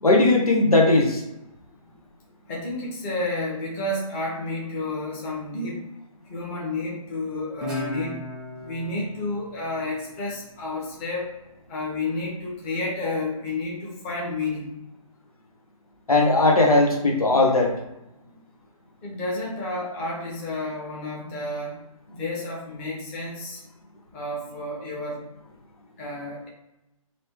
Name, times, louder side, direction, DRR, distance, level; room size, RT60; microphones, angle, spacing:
voice 1, 0.0-1.2 16.1-17.7, left 2 dB, 90° left, 0 dB, 1.3 m, -18 dB
voice 2, 2.5-5.9 6.3-8.2 8.6-11.3 11.7-14.7 19.0-21.8 22.1-23.6 24.1-25.2 26.0-26.5, left 2 dB, 20° left, -4 dB, 1.2 m, -31 dB
Guitar, 7.6-10.8, left 2 dB, 5° right, 0.7 m, -36 dB
3.2 x 3.0 x 4.5 m, 0.92 s
figure-of-eight pair, 150°, 18 cm